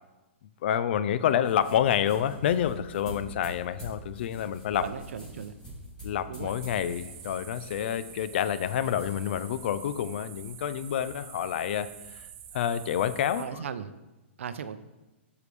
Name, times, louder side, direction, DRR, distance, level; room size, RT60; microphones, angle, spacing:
voice 1, 0.6-4.8 6.0-12.3 12.5-13.5, left 9 dB, 55° left, 13 dB, 0.5 m, -28 dB
sound 1, 1.4-11.0, equal, 10° left, 3.0 m, -47 dB
voice 2, 4.8-5.5 6.3-6.5 13.4-13.9 14.4-14.8, right 7 dB, 75° right, 12 dB, 0.6 m, -37 dB
sound 2, 6.5-13.5, right 9 dB, 35° right, 0.7 m, -47 dB
12.0 x 4.8 x 3.3 m, 1.0 s
hypercardioid pair, 145°, 7 cm